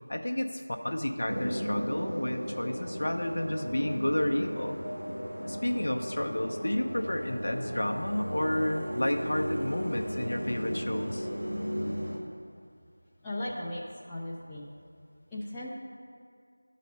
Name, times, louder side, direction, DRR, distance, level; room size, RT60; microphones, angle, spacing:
voice 1, 0.1-4.8 5.4-11.3, left 1 dB, 50° left, 4 dB, 0.7 m, -31 dB
sound 1, 1.3-12.2, equal, 65° right, 1.6 m, -35 dB
voice 2, 13.2-13.8 14.1-14.7 15.3-15.7, left 1 dB, 5° left, -9 dB, 0.4 m, -36 dB
12.0 x 4.1 x 5.3 m, 2.3 s
figure-of-eight pair, 170°, 0 cm